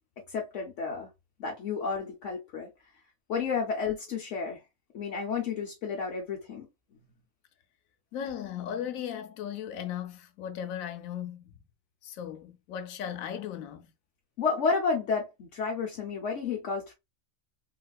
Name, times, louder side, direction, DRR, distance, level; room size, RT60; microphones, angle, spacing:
voice 1, 0.3-1.1 1.4-2.7 3.3-4.6 4.9-6.7 14.4-16.9, left 5 dB, 65° left, 1.0 m, -31 dB
voice 2, 8.1-11.5 12.0-13.8, left 9 dB, 90° left, 1.0 m, -37 dB
3.7 x 2.4 x 2.3 m
omnidirectional pair, 1.4 m